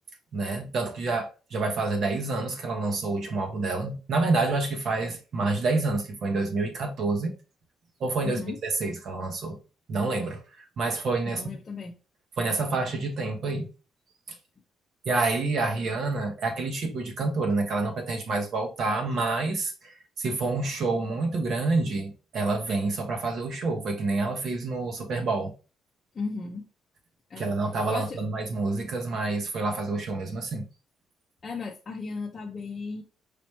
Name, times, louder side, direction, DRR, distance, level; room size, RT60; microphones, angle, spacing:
voice 1, 0.3-7.3 8.0-9.6 9.9-11.6 12.4-13.7 15.0-25.5 27.4-30.6, right 3 dB, 50° right, 1.2 m, -28 dB
voice 2, 8.2-8.6 11.2-12.0 26.1-26.7 27.3-27.6 27.9-28.2 31.4-33.0, left 4 dB, 25° left, 0.6 m, -35 dB
5.0 x 2.9 x 3.2 m
cardioid pair, 155°, 0 cm